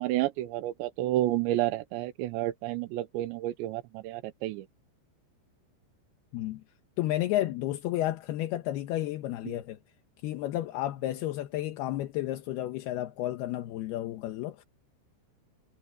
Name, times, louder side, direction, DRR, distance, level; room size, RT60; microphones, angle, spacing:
voice 1, 0.0-4.7 9.5-9.6, right 15 dB, 80° right, 3.1 m, -30 dB
voice 2, 6.3-6.6 7.0-9.8 10.2-14.6, left 14 dB, 70° left, 2.7 m, -32 dB
omnidirectional pair, 5.2 m